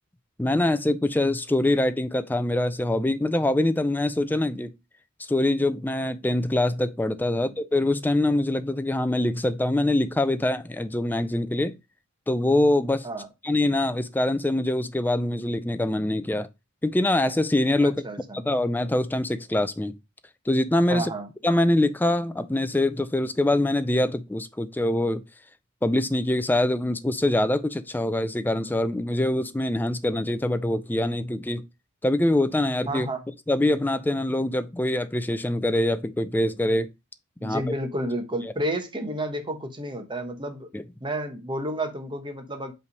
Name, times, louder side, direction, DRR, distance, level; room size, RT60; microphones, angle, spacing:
voice 1, 0.4-4.7 5.2-11.8 12.3-13.1 13.4-16.5 16.8-18.1 18.3-20.0 20.5-21.1 21.4-25.2 25.8-31.6 32.0-33.1 33.5-36.9 37.4-37.6 40.7-40.8, left 1 dB, 10° left, 0.4 m, -24 dB
voice 2, 17.8-18.4 20.9-21.3 32.9-33.3 37.4-40.7 41.0-42.7, right 1 dB, 20° right, 1.0 m, -31 dB
5.5 x 3.3 x 5.2 m
head